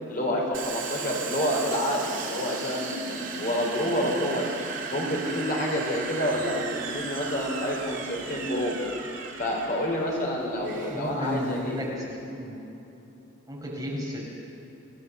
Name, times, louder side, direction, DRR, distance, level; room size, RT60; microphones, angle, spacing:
voice 1, 0.1-4.6 4.9-8.8 9.4-11.8, equal, 45° left, -1 dB, 4.2 m, -28 dB
Domestic sounds home sounds, 0.5-11.9, right 5 dB, 65° right, 3.0 m, -36 dB
voice 2, 10.6-12.6 13.5-14.2, left 1 dB, 15° right, -4 dB, 5.1 m, -33 dB
26.5 x 17.0 x 7.1 m, 3.0 s
head